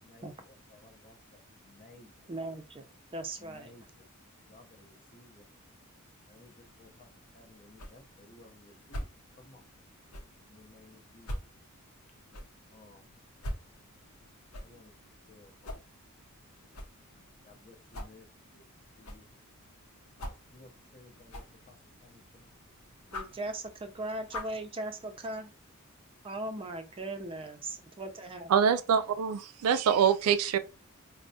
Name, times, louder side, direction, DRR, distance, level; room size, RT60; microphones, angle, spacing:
voice 1, 0.0-2.3 3.4-4.1 4.5-5.5 6.3-9.1 9.4-9.7 10.5-11.3 12.7-13.1 14.6-14.9 15.3-15.8 17.4-18.3 18.5-18.6 19.0-19.3 20.2-22.6, left 2 dB, 40° left, 0.6 m, -57 dB
voice 2, 2.3-2.8 3.1-3.7 23.1-25.5 26.2-28.5, right 2 dB, 25° right, 0.4 m, -38 dB
sound 1, 6.6-24.7, equal, 80° left, 0.7 m, -46 dB
voice 3, 28.5-30.6, right 7 dB, 85° right, 0.3 m, -25 dB
4.4 x 2.1 x 2.6 m
head